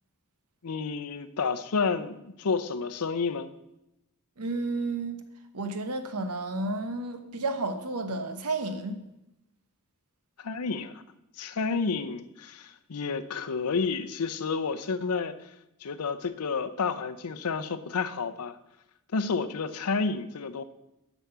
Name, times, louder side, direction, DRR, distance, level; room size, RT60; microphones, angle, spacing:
voice 1, 0.6-3.5 10.4-11.0 11.4-15.5 15.8-18.6 19.1-20.6, left 4 dB, 80° left, 10 dB, 0.6 m, -30 dB
voice 2, 4.4-5.2 5.5-9.0, right 2 dB, 90° right, 9 dB, 1.1 m, -31 dB
8.1 x 6.2 x 6.8 m, 0.88 s
head